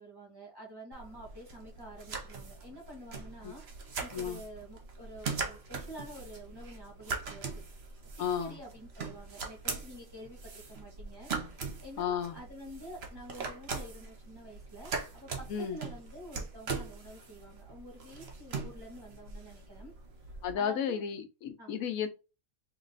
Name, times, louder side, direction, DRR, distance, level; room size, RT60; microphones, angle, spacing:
voice 1, 0.0-7.6 8.4-19.9 20.5-21.0 21.6-21.7, right 1 dB, 15° right, 1.5 m, -49 dB
sound 1, 0.9-20.5, right 4 dB, 50° right, 1.1 m, -41 dB
voice 2, 8.2-8.5 12.0-12.4 15.5-15.8 20.4-22.1, left 8 dB, 85° left, 1.1 m, -33 dB
3.1 x 2.9 x 3.9 m
omnidirectional pair, 1.4 m